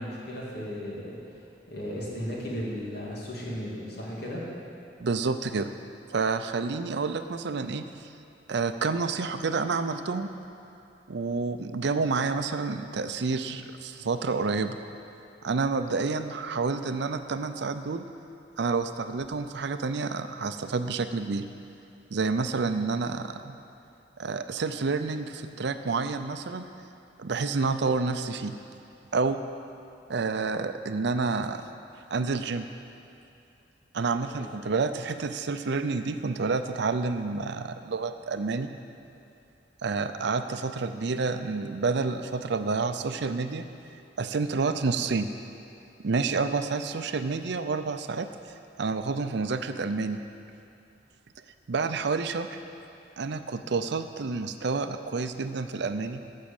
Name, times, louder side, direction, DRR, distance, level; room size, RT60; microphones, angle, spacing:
voice 1, 0.0-1.4 1.7-4.5 34.3-34.5, equal, 60° left, -5 dB, 2.7 m, -35 dB
voice 2, 5.0-5.7 6.1-7.9 8.5-10.3 11.1-14.8 15.4-18.0 18.6-21.5 22.1-23.6 24.2-26.7 27.2-28.6 29.1-29.4 30.1-31.6 32.1-32.7 33.9-38.7 39.8-43.7 44.2-45.3 46.0-48.3 48.8-50.2 51.7-52.5 53.2-56.2, right 4 dB, 65° right, 9 dB, 0.5 m, -29 dB
13.5 x 6.4 x 7.1 m, 2.6 s
head